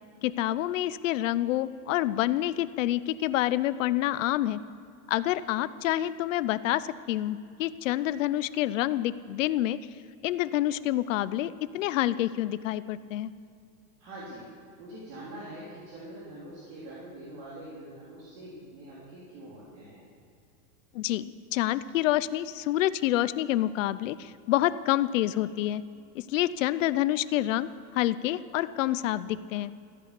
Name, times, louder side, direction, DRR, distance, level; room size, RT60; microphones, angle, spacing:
voice 1, 0.2-4.6 5.1-9.8 10.2-13.3 20.9-25.8 26.1-29.7, left 14 dB, 60° left, 15 dB, 0.6 m, -28 dB
voice 2, 14.0-14.5 14.8-20.0, right 1 dB, 45° right, -7 dB, 3.7 m, -44 dB
14.0 x 10.5 x 8.3 m, 2.4 s
supercardioid pair, 170°, 44 cm